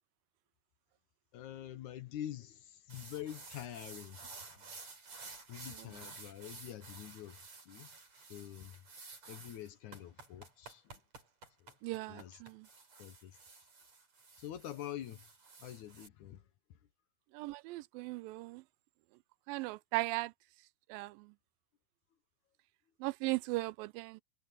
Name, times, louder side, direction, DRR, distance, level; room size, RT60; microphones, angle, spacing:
voice 1, 1.3-4.7 5.5-7.4 7.7-7.9 8.2-8.8 9.3-11.0 11.6-11.7 12.1-12.4 13.0-13.4 14.4-15.3 15.6-16.4, left 11 dB, 65° left, 2.3 m, -46 dB
sound 1, 2.9-16.1, right 4 dB, 50° right, 7.3 m, -53 dB
voice 2, 11.8-12.7 17.3-18.6 19.5-20.3 20.9-21.3 23.0-24.2, right 21 dB, 90° right, 2.3 m, -38 dB
omnidirectional pair, 4.0 m